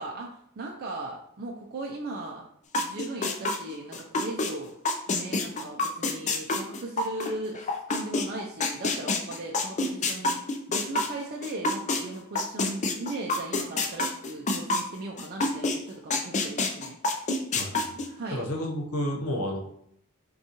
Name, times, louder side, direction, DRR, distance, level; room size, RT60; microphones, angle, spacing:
voice 1, 0.0-2.4 2.8-4.7 5.1-10.4 10.7-17.0 18.2-18.4, right 2 dB, 45° right, -1 dB, 0.4 m, -38 dB
sound 1, 2.7-4.5 4.8-12.0 12.3-15.8 16.1-18.1, left 2 dB, 35° left, 0.4 m, -27 dB
voice 2, 17.5-19.6, equal, 90° left, 0 dB, 0.9 m, -31 dB
5.4 x 2.3 x 2.9 m, 0.71 s
head